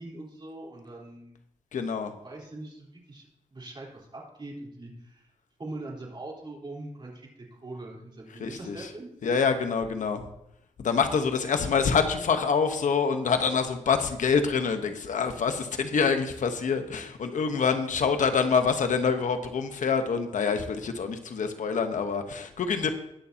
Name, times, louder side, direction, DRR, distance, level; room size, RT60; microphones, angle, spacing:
voice 1, 0.0-1.4 2.2-5.3 5.6-7.3 7.6-9.1 11.3-11.4, right 2 dB, 40° right, -3 dB, 3.8 m, -42 dB
voice 2, 1.7-2.1 8.4-8.9 9.2-10.3 10.8-22.9, left 5 dB, 80° left, 7 dB, 1.1 m, -26 dB
20.0 x 6.9 x 2.9 m, 0.80 s
cardioid pair, 85°, 13 cm